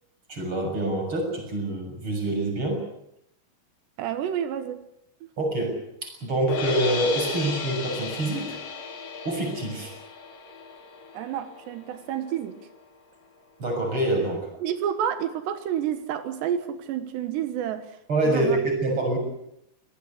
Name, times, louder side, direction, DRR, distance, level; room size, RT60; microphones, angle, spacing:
voice 1, 0.3-2.8 5.4-5.8 6.0-8.6 9.2-9.9 13.6-14.5 18.1-19.2, right 1 dB, 30° right, 2 dB, 7.5 m, -26 dB
voice 2, 4.0-4.8 11.1-12.6 14.6-17.9 18.2-18.6, right 9 dB, 75° right, 10 dB, 3.5 m, -29 dB
sound 1, 6.5-12.6, left 4 dB, 55° left, 4.6 m, -34 dB
25.0 x 18.5 x 8.3 m, 0.80 s
omnidirectional pair, 5.0 m